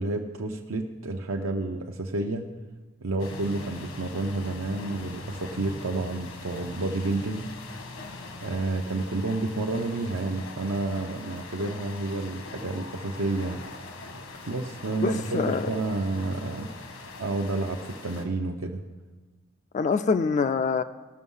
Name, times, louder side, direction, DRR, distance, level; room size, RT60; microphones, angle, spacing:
voice 1, 0.0-2.5 3.0-7.5 8.4-13.6 14.5-16.7 17.2-18.8, right 2 dB, 75° right, 2 dB, 0.7 m, -30 dB
sound 1, 3.2-18.3, left 3 dB, 80° left, 1.4 m, -42 dB
voice 2, 15.0-15.7 19.7-20.8, left 4 dB, 35° left, 9 dB, 0.3 m, -25 dB
17.5 x 6.1 x 5.5 m, 1.3 s
head